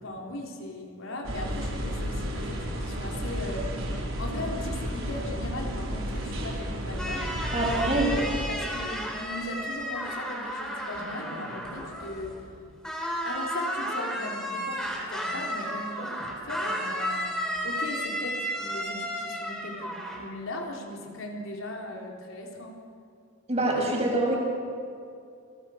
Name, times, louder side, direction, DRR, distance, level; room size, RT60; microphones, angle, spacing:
voice 1, 0.0-3.7 4.2-7.3 8.5-12.4 13.2-22.8, left 1 dB, 75° left, 0 dB, 3.8 m, -38 dB
sound 1, 1.2-8.5, equal, 75° right, 4.4 m, -32 dB
sound 2, 7.0-12.6 12.8-20.2, equal, 5° left, 4.2 m, -33 dB
voice 2, 7.5-8.1 23.5-24.4, right 2 dB, 30° right, -1 dB, 6.9 m, -25 dB
28.5 x 20.0 x 6.5 m, 2.5 s
head